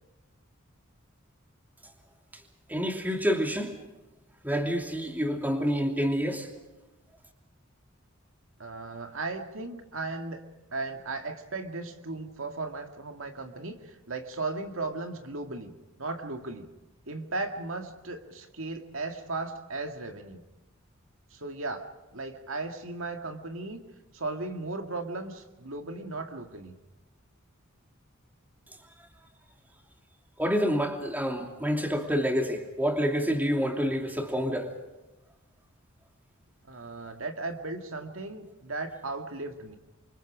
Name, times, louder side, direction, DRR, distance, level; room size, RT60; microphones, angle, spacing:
voice 1, 2.7-3.8 4.4-6.5 30.4-34.7, equal, 10° right, 4 dB, 2.9 m, -28 dB
voice 2, 8.6-10.4 10.7-15.7 16.0-16.7 17.1-20.4 21.3-23.8 24.1-26.8 36.6-39.8, right 3 dB, 75° right, 6 dB, 2.2 m, -36 dB
28.0 x 24.5 x 5.0 m, 1.1 s
head